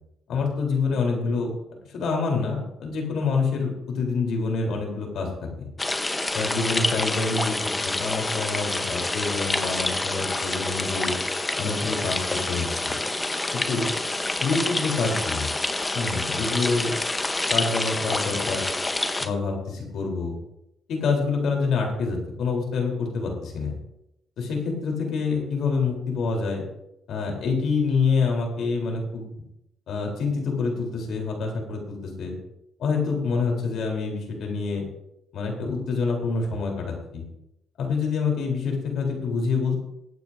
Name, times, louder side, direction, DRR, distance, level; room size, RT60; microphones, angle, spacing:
voice 1, 0.3-1.5 1.9-5.7 6.3-11.1 11.6-13.0 13.5-13.9 14.4-15.5 15.9-16.9 17.5-18.6 19.2-20.4 20.9-23.7 24.4-26.6 27.1-29.3 29.9-32.4 32.8-34.8 35.3-37.3 37.8-39.8, left 4 dB, 75° left, 1 dB, 3.7 m, -27 dB
sound 1, 5.8-19.3, left 2 dB, 20° left, 1.0 m, -27 dB
21.0 x 9.2 x 2.7 m, 0.85 s
cardioid pair, 90°, 0 cm